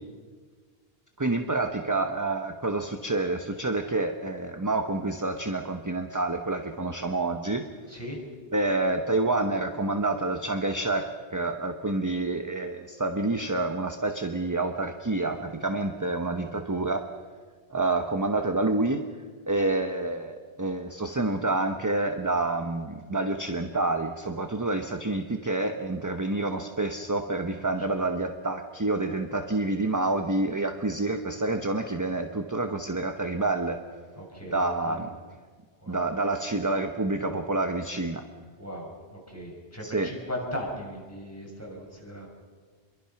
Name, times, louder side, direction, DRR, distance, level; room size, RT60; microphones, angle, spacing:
voice 1, 1.2-7.7 8.5-17.1 17.7-19.0 19.5-33.8 34.4-35.1 35.9-38.3 39.8-40.2, right 2 dB, 20° right, 6 dB, 1.0 m, -28 dB
voice 2, 7.9-8.2 27.5-28.0 34.2-35.0 35.8-36.0 38.6-42.3, equal, 15° left, -2 dB, 6.3 m, -38 dB
27.0 x 23.0 x 5.9 m, 1.5 s
omnidirectional pair, 1.1 m